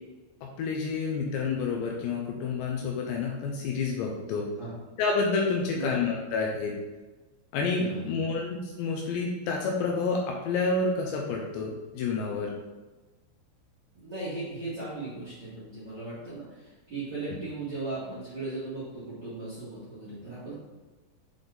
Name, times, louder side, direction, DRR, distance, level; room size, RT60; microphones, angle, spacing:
voice 1, 0.6-4.5 5.0-6.8 7.5-12.5, left 4 dB, 90° left, 0 dB, 2.6 m, -29 dB
voice 2, 7.8-8.1 13.9-20.5, right 2 dB, 75° right, -12 dB, 1.0 m, -37 dB
7.7 x 3.9 x 3.4 m, 1.2 s
omnidirectional pair, 5.7 m